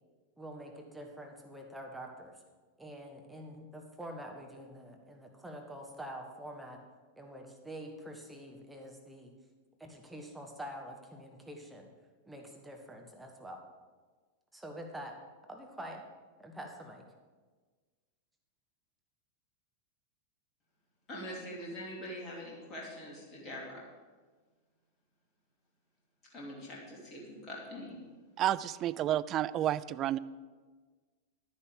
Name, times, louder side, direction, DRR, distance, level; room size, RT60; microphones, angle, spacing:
voice 1, 0.4-2.3 2.8-6.8 7.2-9.3 9.8-11.9 12.3-13.6 14.5-15.2 15.5-16.0 16.4-17.0, right 1 dB, 5° right, 2 dB, 1.4 m, -46 dB
voice 2, 21.1-23.8 26.3-28.0, equal, 30° left, -3 dB, 2.8 m, -43 dB
voice 3, 28.4-30.2, right 12 dB, 35° right, 15 dB, 0.4 m, -30 dB
10.5 x 9.8 x 5.1 m, 1.4 s
figure-of-eight pair, 90°, 0 cm